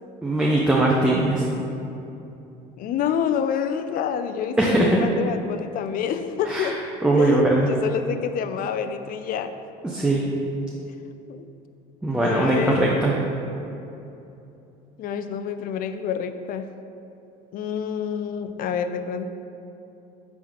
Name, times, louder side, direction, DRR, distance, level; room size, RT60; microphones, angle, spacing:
voice 1, 0.2-1.4 4.6-5.0 6.5-6.7 7.0-7.7 9.8-10.2 12.0-13.1, right 2 dB, 5° right, -3 dB, 0.6 m, -20 dB
voice 2, 2.8-6.8 7.2-9.5 11.3-11.5 12.2-12.9 15.0-16.7 17.5-19.3, left 8 dB, 45° left, 10 dB, 0.4 m, -28 dB
6.0 x 3.6 x 4.7 m, 2.9 s
supercardioid pair, 95°, 19 cm